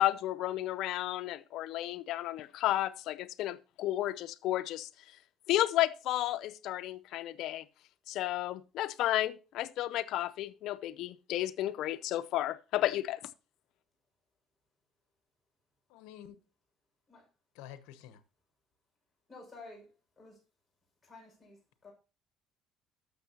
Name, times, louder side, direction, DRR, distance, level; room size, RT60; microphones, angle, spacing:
voice 1, 0.0-4.9 5.5-7.6 8.1-13.2, left 14 dB, 70° left, 0.5 m, -32 dB
voice 2, 15.9-16.4 17.5-18.2, left 11 dB, 90° left, 0.9 m, -49 dB
voice 3, 19.3-19.9 20.2-20.4 21.0-21.9, left 3 dB, 25° left, 6.0 m, -52 dB
13.0 x 6.4 x 2.9 m
cardioid pair, 100°, 0 cm